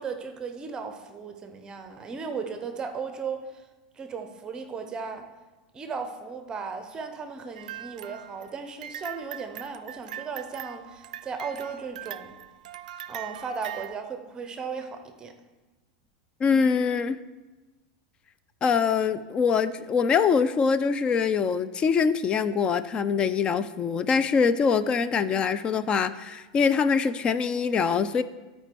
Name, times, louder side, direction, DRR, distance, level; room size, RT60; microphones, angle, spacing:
voice 1, 0.0-3.6 4.0-5.2 5.7-12.4 13.1-15.3, right 5 dB, 20° right, 7 dB, 0.8 m, -36 dB
sound 1, 7.5-14.0, right 11 dB, 85° right, 0.3 m, -41 dB
voice 2, 16.4-17.2 18.6-28.2, left 6 dB, 25° left, 14 dB, 0.4 m, -24 dB
13.0 x 4.5 x 4.5 m, 1.2 s
supercardioid pair, 140°, 4 cm